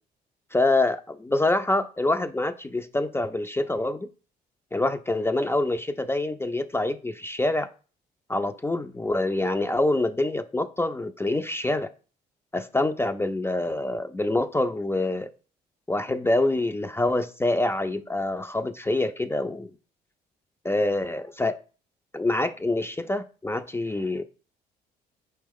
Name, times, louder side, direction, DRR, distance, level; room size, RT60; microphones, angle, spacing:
voice 1, 0.5-4.1 4.7-7.7 8.3-11.9 12.5-15.3 15.9-19.7 20.6-21.6 22.1-24.2, left 2 dB, 10° left, 0.3 m, -26 dB
4.4 x 2.9 x 3.6 m
hypercardioid pair, 50°, 20 cm